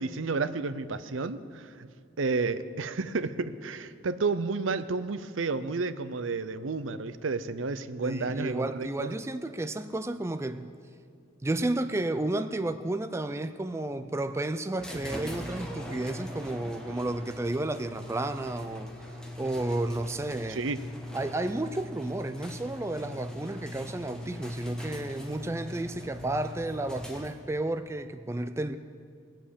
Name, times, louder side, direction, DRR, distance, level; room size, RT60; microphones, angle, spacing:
voice 1, 0.0-1.9 2.2-9.1 20.5-20.8, right 4 dB, 75° right, 13 dB, 0.6 m, -31 dB
voice 2, 8.0-10.7 11.4-20.6 21.1-28.8, right 2 dB, 15° right, 10 dB, 0.4 m, -32 dB
sound 1, 14.8-27.6, left 1 dB, 5° left, 1.4 m, -41 dB
19.5 x 7.3 x 8.6 m, 2.2 s
head